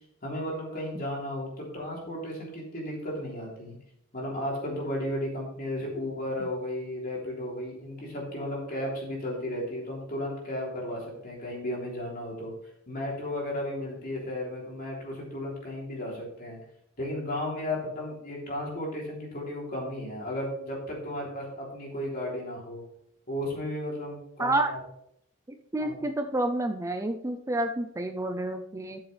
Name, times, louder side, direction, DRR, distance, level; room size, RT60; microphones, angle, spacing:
voice 1, 0.2-3.7 4.1-12.5 12.9-16.6 17.0-22.8 23.3-24.8 25.8-25.9, left 1 dB, 45° left, -3 dB, 3.3 m, -34 dB
voice 2, 24.4-24.7 25.7-29.0, right 1 dB, 15° right, 5 dB, 0.5 m, -29 dB
12.5 x 7.1 x 3.4 m, 0.73 s
head